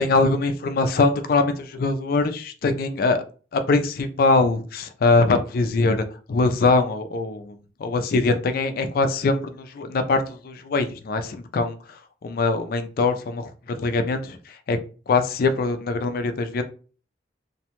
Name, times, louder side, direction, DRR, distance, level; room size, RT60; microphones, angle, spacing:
voice 1, 0.0-3.2 3.5-6.0 6.3-11.8 12.2-13.5 13.8-14.8 15.1-16.6, left 3 dB, 55° left, 8 dB, 0.4 m, -22 dB
2.6 x 2.1 x 2.8 m, 0.38 s
head